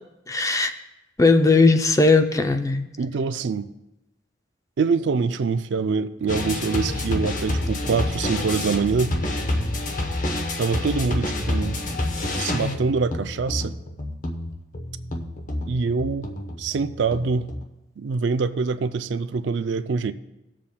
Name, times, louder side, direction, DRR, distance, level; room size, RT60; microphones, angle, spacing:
voice 1, 0.3-0.7 1.2-2.8, left 3 dB, 15° left, 7 dB, 0.4 m, -18 dB
voice 2, 3.0-3.7 4.8-9.2 10.6-11.8 12.4-13.7 15.7-16.3 16.6-17.5 18.0-20.1, right 4 dB, 70° right, 11 dB, 0.4 m, -24 dB
sound 1, 6.3-17.6, left 1 dB, 45° left, 0.9 m, -28 dB
18.0 x 7.4 x 2.2 m, 0.93 s
head